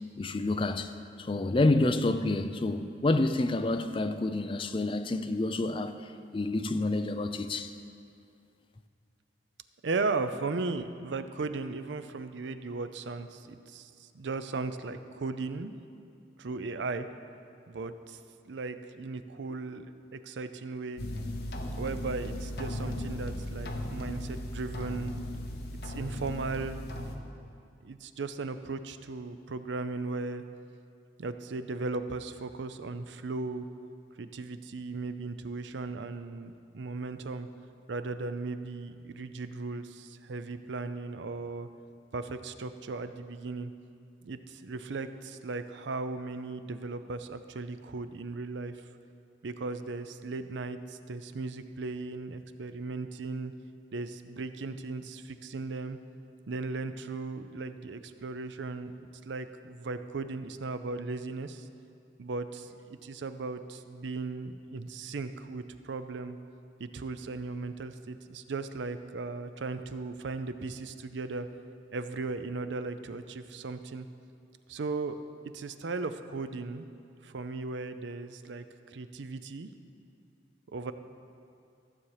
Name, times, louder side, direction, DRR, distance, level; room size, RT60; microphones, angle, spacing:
voice 1, 0.2-0.9 1.2-6.0 6.3-7.7, left 2 dB, 30° left, 0.4 m, -28 dB
voice 2, 9.8-15.7 16.4-17.1 17.7-18.2 18.5-19.9 20.1-21.0 21.8-25.2 25.8-26.8 27.8-30.4 31.2-33.7 34.2-37.5 37.9-41.7 42.1-43.7 44.2-48.8 49.4-53.5 53.9-56.0 56.5-58.9 59.3-61.6 62.2-66.4 66.8-71.5 71.9-74.1 74.7-75.2 75.5-76.9 77.2-79.7 80.7-80.9, right 3 dB, 75° right, 0.5 m, -37 dB
sound 1, 21.0-27.2, left 1 dB, 55° left, 0.9 m, -37 dB
14.5 x 7.1 x 4.9 m
head